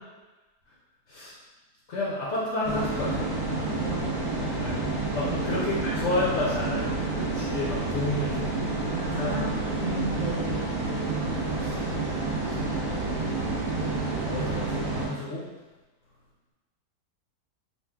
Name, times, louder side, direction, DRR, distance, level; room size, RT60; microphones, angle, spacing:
voice 1, 1.9-3.3 4.6-8.7 9.1-9.4 11.6-11.8 12.4-12.7 14.3-15.5, left 2 dB, 60° left, -6 dB, 0.8 m, -31 dB
sound 1, 2.6-15.1, right 3 dB, 15° right, 1.2 m, -29 dB
voice 2, 3.5-4.4 5.2-5.3 8.9-10.7, right 1 dB, 35° right, -8 dB, 1.0 m, -35 dB
3.0 x 2.5 x 3.5 m, 1.2 s
omnidirectional pair, 1.6 m